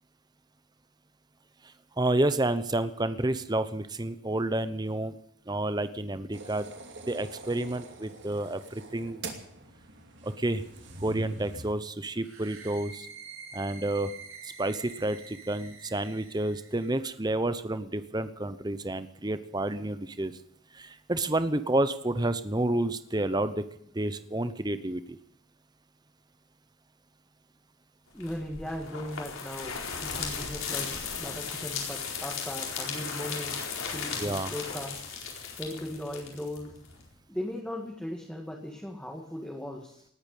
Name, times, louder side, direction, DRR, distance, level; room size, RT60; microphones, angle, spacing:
voice 1, 2.0-5.1 5.5-6.7 7.1-9.2 10.2-10.6 11.0-13.1 13.5-14.1 14.6-20.3 20.7-23.6 23.9-25.2 34.2-34.5, right 1 dB, 20° right, 12 dB, 0.8 m, -30 dB
sound 1, 6.3-11.7, right 2 dB, 55° right, 2.7 m, -44 dB
sound 2, 12.2-17.0, right 5 dB, 75° right, 3.9 m, -47 dB
voice 2, 28.1-30.9 31.2-35.0 35.6-36.8 37.3-40.1, left 1 dB, 5° left, 0 dB, 1.9 m, -38 dB
sound 3, 28.2-37.0, left 6 dB, 70° left, 4.4 m, -36 dB
19.0 x 9.0 x 8.3 m, 0.72 s
head